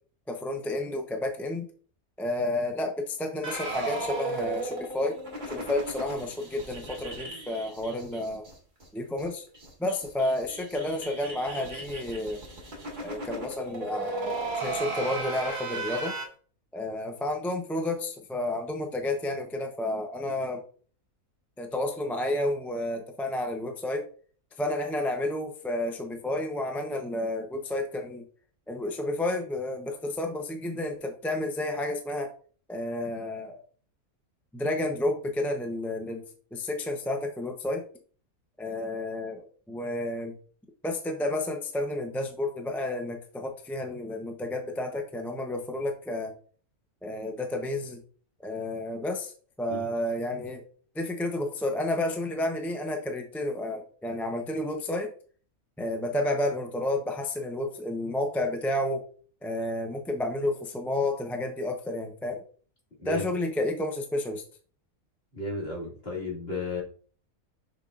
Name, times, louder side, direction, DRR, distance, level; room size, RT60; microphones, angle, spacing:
voice 1, 0.3-1.7 2.2-5.2 5.5-8.4 8.9-9.5 9.8-12.4 13.0-16.2 16.7-20.6 21.6-24.0 24.6-28.2 28.7-32.3 32.7-33.6 34.5-36.2 36.5-37.8 38.6-40.3 40.8-46.3 47.0-48.0 48.4-49.3 49.6-50.6 50.9-55.1 55.8-59.0 59.4-62.4 63.0-64.4, left 1 dB, ahead, 3 dB, 0.4 m, -31 dB
sound 1, 3.4-8.5 8.8-8.9 9.2-9.3 9.5-16.2, right 2 dB, 30° right, 1.9 m, -36 dB
voice 2, 65.3-66.8, left 2 dB, 45° left, -3 dB, 2.6 m, -33 dB
6.6 x 6.1 x 2.5 m, 0.43 s
omnidirectional pair, 1.5 m